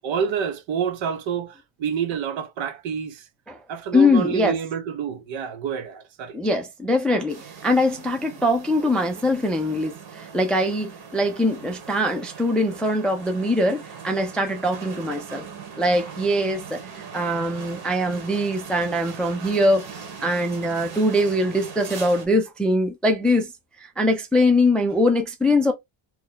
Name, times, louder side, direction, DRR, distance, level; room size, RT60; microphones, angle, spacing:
voice 1, 0.0-3.2 3.7-6.4, right 7 dB, 65° right, 0.9 m, -28 dB
voice 2, 3.9-4.6 6.3-15.4 15.8-23.5 23.8-25.7, left 1 dB, ahead, 0.3 m, -22 dB
sound 1, 7.3-22.3, right 6 dB, 50° right, 1.3 m, -40 dB
2.9 x 2.6 x 3.7 m
cardioid pair, 150°, 50 cm